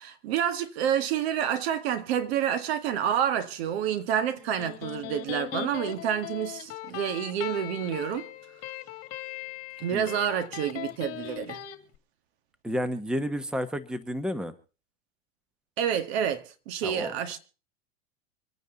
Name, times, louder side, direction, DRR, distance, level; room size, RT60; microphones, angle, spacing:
voice 1, 0.0-8.3 9.8-11.6 15.8-17.4, right 9 dB, 65° right, 1.9 m, -28 dB
Electric guitar, 4.4-11.8, left 14 dB, 45° left, 2.1 m, -39 dB
voice 2, 12.6-14.5 16.8-17.1, equal, ahead, 1.2 m, -31 dB
25.5 x 9.2 x 3.9 m
hypercardioid pair, 115°, 33 cm